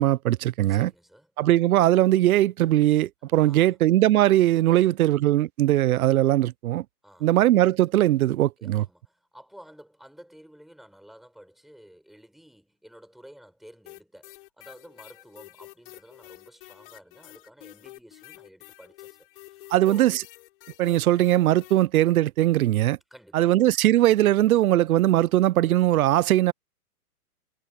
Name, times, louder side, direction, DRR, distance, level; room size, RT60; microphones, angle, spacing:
voice 1, 0.0-0.9 1.4-6.8 7.2-8.8 19.7-20.1 20.8-23.0 23.3-26.5, right 14 dB, 70° right, 0.5 m, -20 dB
voice 2, 0.7-1.3 3.4-3.8 4.7-5.1 7.0-7.4 8.6-20.2 23.1-23.6, equal, ahead, 5.3 m, -51 dB
sound 1, 13.9-21.9, left 18 dB, 35° left, 7.5 m, -48 dB
hypercardioid pair, 165°, 45 cm